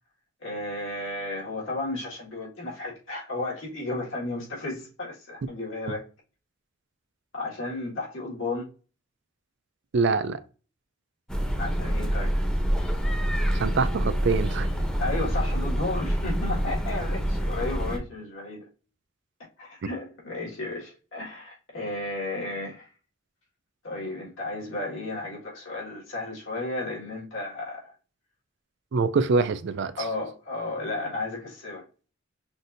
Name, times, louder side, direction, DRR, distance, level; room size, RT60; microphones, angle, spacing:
voice 1, 0.4-6.0 7.3-8.7 11.6-12.4 15.0-18.6 19.4-22.9 23.8-27.9 30.0-31.9, left 2 dB, 80° left, 1.9 m, -33 dB
voice 2, 9.9-10.4 13.5-14.7 28.9-29.9, right 4 dB, 65° right, 0.4 m, -24 dB
sound 1, 11.3-18.0, equal, 5° left, 0.7 m, -26 dB
5.8 x 2.6 x 2.6 m
head